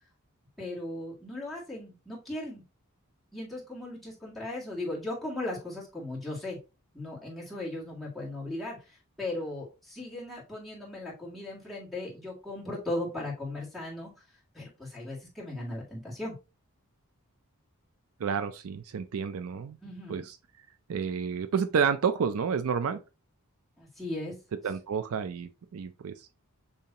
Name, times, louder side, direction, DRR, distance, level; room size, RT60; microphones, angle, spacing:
voice 1, 0.6-2.6 3.3-6.6 6.9-14.1 14.5-16.3 19.8-20.2 23.8-24.3, left 1 dB, ahead, 2.0 m, -37 dB
voice 2, 18.2-19.8 20.1-20.4 20.9-23.0 24.6-26.3, right 6 dB, 65° right, 0.4 m, -30 dB
6.8 x 2.8 x 2.8 m
head